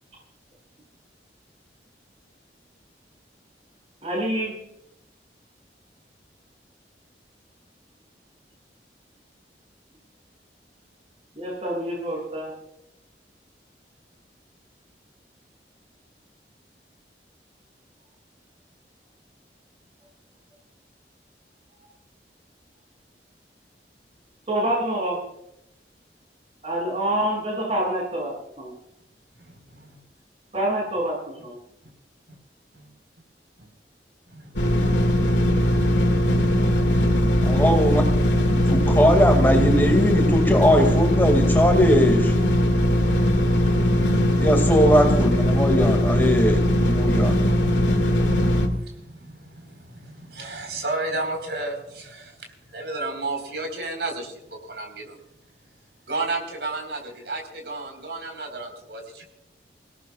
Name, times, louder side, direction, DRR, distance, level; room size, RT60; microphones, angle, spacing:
voice 1, 4.0-4.6 11.3-12.5 24.5-25.2 26.6-28.7 30.5-31.6, right 1 dB, 35° right, -2 dB, 7.3 m, -26 dB
voice 2, 29.5-30.0 32.7-32.9 34.3-34.5 48.6-52.3 52.7-54.3 54.7-55.2 56.1-59.3, right 2 dB, 75° right, 3 dB, 4.6 m, -32 dB
sound 1, 34.6-48.7, left 1 dB, 90° left, 2.2 m, -20 dB
voice 3, 37.4-38.0 38.7-42.3 44.4-47.3, equal, 10° left, 4 dB, 2.3 m, -20 dB
28.0 x 17.5 x 2.4 m, 0.82 s
head